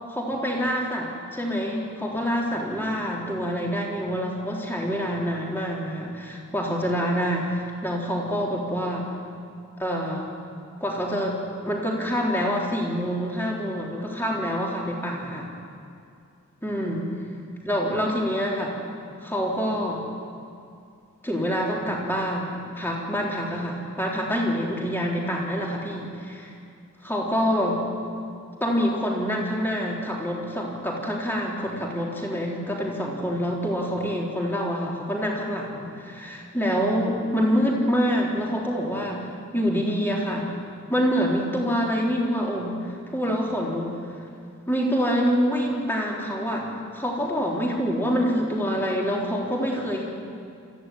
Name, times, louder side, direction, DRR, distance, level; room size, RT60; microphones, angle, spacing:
voice 1, 0.1-9.1 9.8-10.3 10.8-15.5 16.6-17.1 17.6-18.8 19.2-20.0 21.2-26.5 27.0-27.8 28.6-39.3 39.5-40.5 40.9-42.8 43.1-43.9 44.7-46.7 46.9-50.0, equal, 10° left, -2 dB, 3.8 m, -26 dB
28.5 x 15.0 x 9.4 m, 2.5 s
head